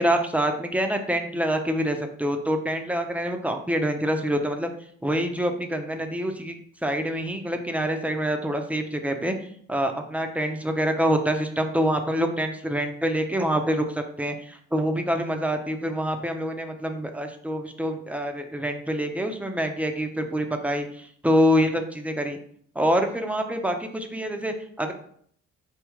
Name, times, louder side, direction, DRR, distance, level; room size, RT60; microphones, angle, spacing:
voice 1, 0.0-4.7 5.0-6.6 6.8-9.3 9.7-22.4 22.8-24.9, equal, 5° right, 5 dB, 0.6 m, -26 dB
4.6 x 3.5 x 3.1 m, 0.62 s
cardioid pair, 90°, 30 cm